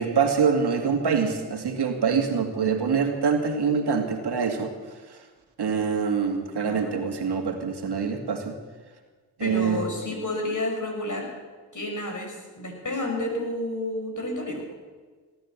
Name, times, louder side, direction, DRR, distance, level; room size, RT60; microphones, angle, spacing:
voice 1, 0.0-4.7 5.6-8.5 9.4-9.9, right 6 dB, 55° right, 5 dB, 2.4 m, -25 dB
voice 2, 6.6-6.9 9.4-11.3 11.7-14.6, left 1 dB, 40° left, 1 dB, 6.2 m, -30 dB
18.5 x 10.5 x 7.4 m, 1.4 s
supercardioid pair, 50°, 46 cm